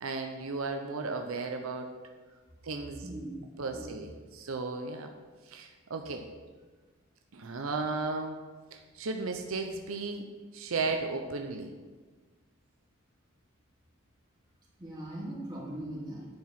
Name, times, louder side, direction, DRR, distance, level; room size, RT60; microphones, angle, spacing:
voice 1, 0.0-1.9 2.6-3.1 3.6-5.1 5.5-6.3 7.3-8.4 8.7-10.2 10.5-11.7, right 3 dB, 85° right, 4 dB, 0.7 m, -35 dB
voice 2, 3.0-3.4 3.7-4.0 14.8-16.3, right 1 dB, 20° right, -6 dB, 2.7 m, -40 dB
10.5 x 4.8 x 5.9 m, 1.4 s
head